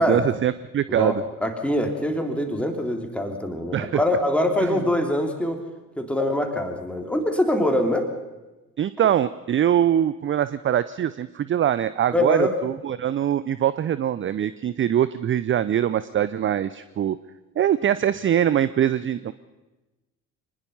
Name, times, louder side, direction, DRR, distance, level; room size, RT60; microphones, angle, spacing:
voice 1, 0.0-1.2 3.7-4.0 4.7-4.8 8.8-17.2 17.6-19.3, right 10 dB, 30° right, 16 dB, 0.6 m, -23 dB
voice 2, 1.0-5.6 6.0-8.1 12.1-12.6, left 1 dB, 5° left, 3 dB, 3.6 m, -24 dB
24.5 x 20.0 x 5.7 m, 1.1 s
figure-of-eight pair, 55°, 44 cm